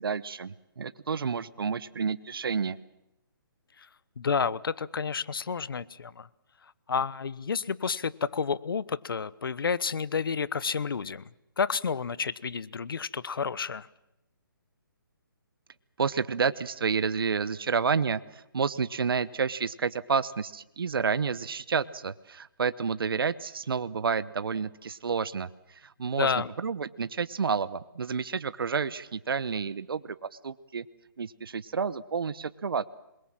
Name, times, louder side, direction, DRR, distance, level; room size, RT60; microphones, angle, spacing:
voice 1, 0.0-2.8 16.0-26.3 26.6-30.2 30.4-30.8 31.2-32.9, right 5 dB, 75° right, 14 dB, 1.0 m, -30 dB
voice 2, 4.2-6.3 6.9-11.3 11.6-13.9 26.0-26.5, left 5 dB, 70° left, 18 dB, 1.1 m, -30 dB
27.5 x 22.0 x 7.5 m, 0.86 s
hypercardioid pair, 160°, 12 cm